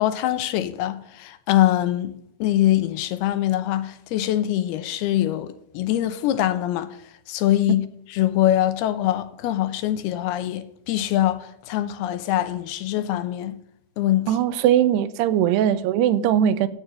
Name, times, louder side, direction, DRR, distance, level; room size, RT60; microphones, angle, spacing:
voice 1, 0.0-6.9 7.3-13.6 14.0-14.3, left 13 dB, 80° left, 2.7 m, -23 dB
voice 2, 14.3-16.7, right 10 dB, 90° right, 2.8 m, -20 dB
10.5 x 9.0 x 9.9 m
omnidirectional pair, 4.7 m